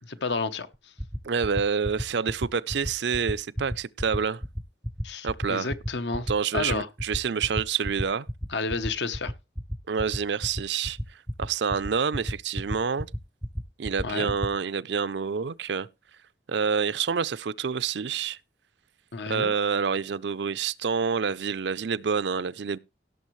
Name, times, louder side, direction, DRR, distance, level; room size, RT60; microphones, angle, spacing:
voice 1, 0.2-0.9 5.0-6.9 8.5-9.3 14.0-14.3 19.1-19.5, left 4 dB, 75° left, 0.9 m, -31 dB
sound 1, 0.7-14.5, equal, ahead, 0.5 m, -30 dB
voice 2, 1.2-4.4 5.2-5.7 6.3-8.3 9.9-11.0 11.4-13.1 13.8-15.9 16.5-18.4 19.3-22.8, right 6 dB, 75° right, 0.5 m, -27 dB
17.0 x 7.0 x 3.1 m
head